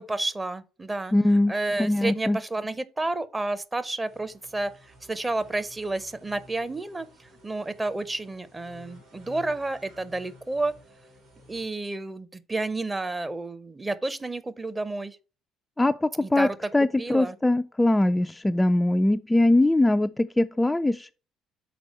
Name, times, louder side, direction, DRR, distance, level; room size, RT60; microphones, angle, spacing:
voice 1, 0.0-7.1 7.4-10.7 11.5-15.2 16.2-17.4, right 2 dB, 20° right, 0.7 m, -31 dB
voice 2, 1.1-1.5 1.8-2.4 15.8-16.5 16.7-21.1, left 1 dB, 10° left, 0.3 m, -22 dB
sound 1, 4.0-11.7, left 1 dB, 70° right, 3.3 m, -53 dB
6.1 x 4.5 x 5.5 m
figure-of-eight pair, 50°, 0 cm